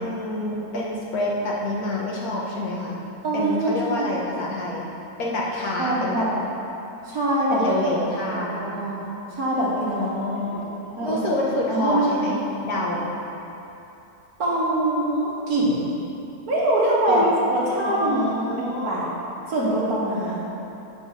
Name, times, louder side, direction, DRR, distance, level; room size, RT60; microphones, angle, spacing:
voice 1, 0.0-3.0 3.3-4.8 5.2-6.2 7.5-8.8 9.9-10.7 11.0-13.1 17.1-17.3 17.9-18.9, left 1 dB, 60° left, -4 dB, 1.5 m, -27 dB
voice 2, 3.2-4.1 5.8-6.3 7.0-7.6 8.3-9.0 9.4-10.6 11.0-11.3 11.7-12.4 14.4-15.9 16.5-19.1 19.5-20.4, right 1 dB, 60° right, -6 dB, 2.0 m, -24 dB
7.1 x 5.6 x 5.6 m, 3.0 s
omnidirectional pair, 1.8 m